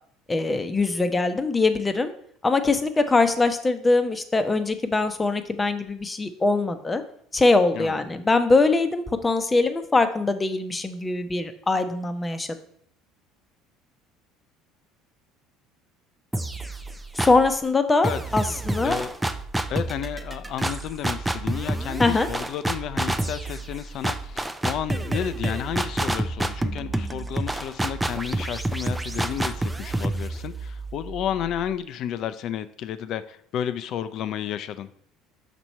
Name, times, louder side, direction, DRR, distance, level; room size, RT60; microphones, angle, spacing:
voice 1, 0.3-2.1 2.4-7.0 7.3-12.5 17.2-19.0 22.0-22.3, left 3 dB, 20° left, 9 dB, 0.7 m, -22 dB
sound 1, 16.3-17.5 18.0-31.7, right 1 dB, 10° right, 0.5 m, -29 dB
voice 2, 19.7-34.9, left 10 dB, 60° left, 12 dB, 0.4 m, -32 dB
6.0 x 3.0 x 5.4 m, 0.64 s
hypercardioid pair, 80°, 0 cm